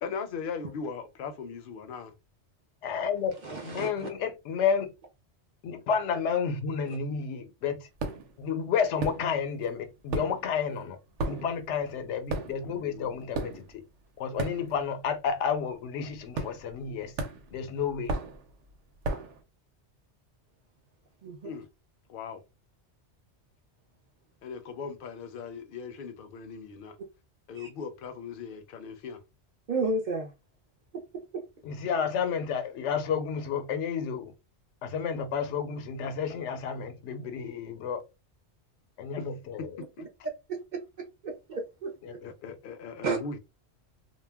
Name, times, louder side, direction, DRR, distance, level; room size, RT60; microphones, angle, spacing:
voice 1, 0.0-2.1 12.6-13.4 21.4-21.7 22.1-22.4 24.4-27.0 27.5-29.2 39.2-39.3 39.8-40.1 42.2-43.4, left 5 dB, 60° left, 0.6 m, -39 dB
voice 2, 2.8-3.3 3.6-4.9 5.6-7.8 8.4-11.0 11.3-13.8 14.2-17.1 17.5-18.1 31.6-34.3 34.8-38.0 39.0-39.7 42.0-42.1 42.4-42.6, left 6 dB, 90° left, 0.9 m, -31 dB
voice 3, 3.4-4.1 6.9-7.0 21.2-21.5 27.6-27.7 29.7-30.3 30.9-31.0 31.3-31.4 41.2-42.2 43.0-43.2, right 3 dB, 50° right, 0.6 m, -32 dB
sound 1, 8.0-8.4 9.0-9.6 9.9-15.0 15.3-15.6 16.3-16.9 17.2-19.4, right 2 dB, 85° right, 0.9 m, -35 dB
2.2 x 2.0 x 3.4 m
omnidirectional pair, 1.2 m